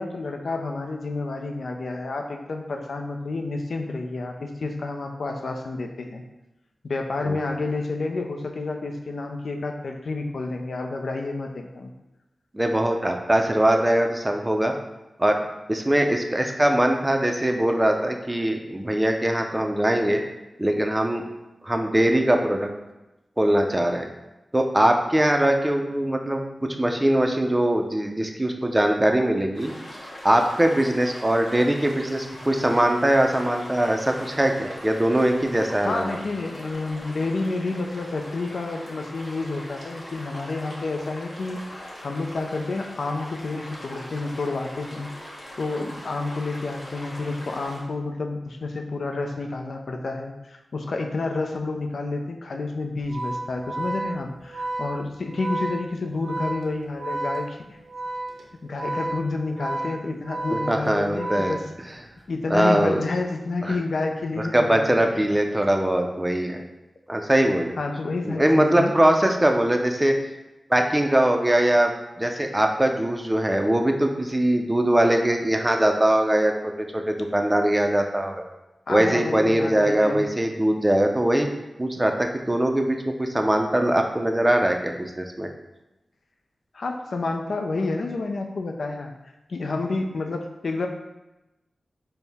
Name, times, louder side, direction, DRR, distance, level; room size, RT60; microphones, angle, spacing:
voice 1, 0.0-6.2 6.8-11.9 35.8-57.8 58.6-61.6 62.3-65.2 67.8-68.9 78.9-80.3 86.7-89.1 89.5-90.9, left 3 dB, 75° left, 4 dB, 0.4 m, -29 dB
voice 2, 12.5-14.7 15.2-15.4 15.7-20.2 20.6-21.2 21.6-22.7 23.4-24.1 24.5-26.4 26.8-29.7 30.2-36.2 60.5-61.6 62.5-63.0 63.6-63.8 64.5-66.6 67.1-67.7 68.3-70.1 70.7-71.9 72.2-78.4 78.9-81.5 81.8-85.5, right 1 dB, 15° right, 3 dB, 0.4 m, -21 dB
sound 1, 29.5-47.8, equal, 45° left, 1.0 m, -41 dB
Organ, 53.0-62.2, right 2 dB, 90° right, 0.6 m, -32 dB
4.3 x 2.1 x 3.4 m, 1.0 s
cardioid pair, 60°, 0 cm